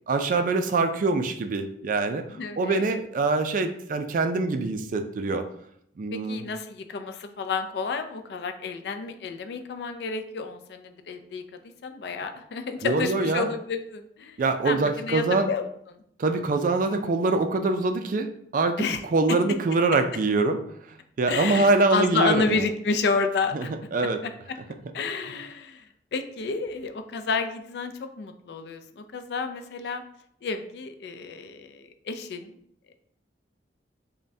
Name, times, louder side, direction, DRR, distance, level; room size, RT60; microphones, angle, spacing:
voice 1, 0.1-2.2 2.6-5.4 6.0-6.4 12.8-13.5 14.4-15.5 16.2-20.6 21.2-22.6 23.5-23.7 23.9-24.2, right 3 dB, 50° right, 7 dB, 0.3 m, -24 dB
voice 2, 2.3-2.8 6.1-14.4 14.6-16.0 18.8-19.0 19.3-19.4 21.3-23.7 24.2-24.3 24.9-30.0 30.4-32.6, left 4 dB, 65° left, 8 dB, 0.4 m, -30 dB
5.2 x 2.2 x 2.7 m, 0.69 s
head